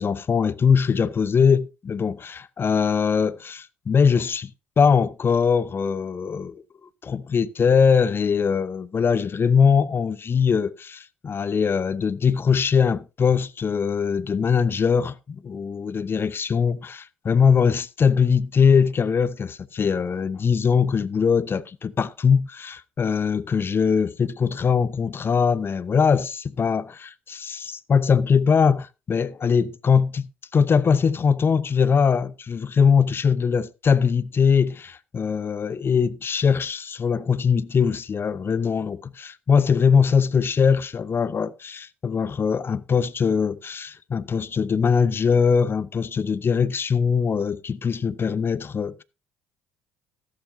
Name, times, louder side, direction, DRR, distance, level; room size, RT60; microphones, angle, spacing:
voice 1, 0.0-4.5 4.8-30.3 30.5-49.0, left 6 dB, 35° left, 0.8 m, -21 dB
14.0 x 11.5 x 2.7 m
hypercardioid pair, 55°, 6 cm